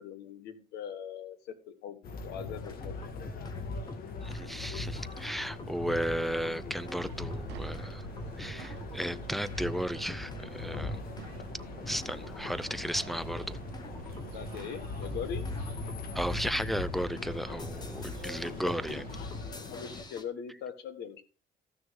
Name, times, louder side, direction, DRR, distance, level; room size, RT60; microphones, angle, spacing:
voice 1, 0.0-3.0 14.3-15.5 18.4-19.0 19.5-21.2, left 7 dB, 75° left, 1.5 m, -41 dB
sound 1, 2.0-20.0, left 3 dB, 60° left, 1.7 m, -40 dB
sound 2, 2.6-3.6 3.9-20.2, left 3 dB, 25° left, 1.3 m, -49 dB
voice 2, 4.2-8.1 8.4-11.0 11.9-13.6 16.1-19.0, equal, ahead, 0.5 m, -34 dB
sound 3, 6.2-19.4, right 9 dB, 80° right, 0.8 m, -47 dB
13.5 x 6.4 x 3.7 m
cardioid pair, 110°, 17 cm